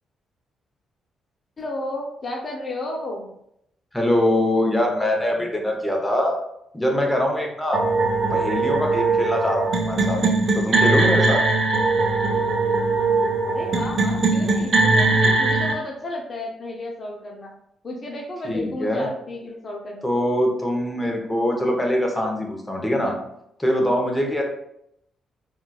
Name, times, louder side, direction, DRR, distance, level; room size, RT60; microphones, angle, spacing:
voice 1, 1.6-3.3 13.4-17.5 17.8-20.1, left 1 dB, 40° left, -1 dB, 0.5 m, -32 dB
voice 2, 3.9-6.4 6.7-7.8 8.3-10.2 10.5-11.4 18.4-19.1 20.0-23.2 23.6-24.4, left 1 dB, 10° left, 1 dB, 0.7 m, -23 dB
sound 1, 7.7-15.7, right 3 dB, 55° right, 0.4 m, -20 dB
3.7 x 2.3 x 2.3 m, 0.77 s
cardioid pair, 80°, 0 cm